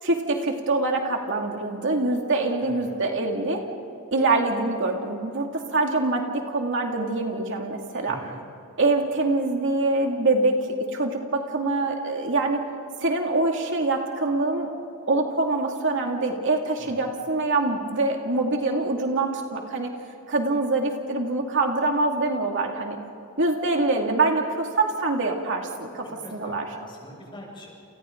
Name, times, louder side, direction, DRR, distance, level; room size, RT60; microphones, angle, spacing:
voice 1, 0.0-3.6 4.1-8.2 8.8-12.6 13.0-14.7 15.1-19.9 20.3-23.0 23.4-26.1 26.3-26.7, right 2 dB, 55° right, 1 dB, 2.4 m, -24 dB
voice 2, 2.6-3.0 8.1-8.3 16.8-17.0 26.0-27.7, left 1 dB, 25° left, -2 dB, 7.1 m, -44 dB
30.0 x 30.0 x 3.9 m, 2.7 s
head